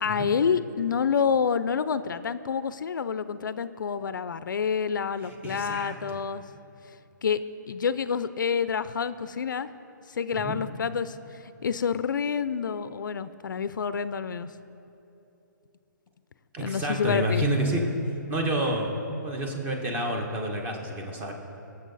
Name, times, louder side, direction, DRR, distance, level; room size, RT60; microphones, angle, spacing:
voice 1, 0.0-6.4 7.2-7.4 7.7-9.7 10.1-14.5 16.6-17.5, left 6 dB, 75° left, 14 dB, 0.5 m, -28 dB
voice 2, 5.3-6.2 10.3-10.6 16.5-17.8 18.3-18.9 19.2-21.3, right 1 dB, 15° right, 2 dB, 1.4 m, -29 dB
21.5 x 7.3 x 4.0 m, 2.9 s
hypercardioid pair, 155°, 11 cm